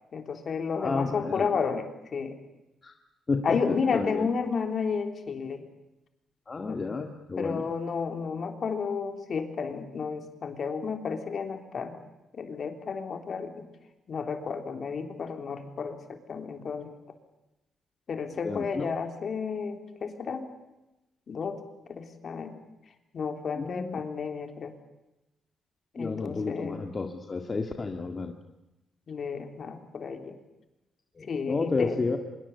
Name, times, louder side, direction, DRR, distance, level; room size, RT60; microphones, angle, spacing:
voice 1, 0.1-1.9 2.1-2.4 3.4-5.6 6.6-7.0 7.4-12.0 12.3-13.6 14.1-16.0 16.3-16.9 18.1-20.5 21.3-21.6 21.9-22.6 23.1-24.7 25.9-26.8 29.1-30.4 31.3-32.0, left 5 dB, 45° left, 6 dB, 3.6 m, -32 dB
voice 2, 0.8-1.5 2.8-2.9 3.3-3.4 3.9-4.3 6.5-7.6 18.4-18.9 23.5-24.0 26.0-28.4 31.2-32.2, left 4 dB, 30° left, 4 dB, 2.0 m, -31 dB
25.0 x 23.0 x 8.4 m, 0.96 s
cardioid pair, 125°, 0 cm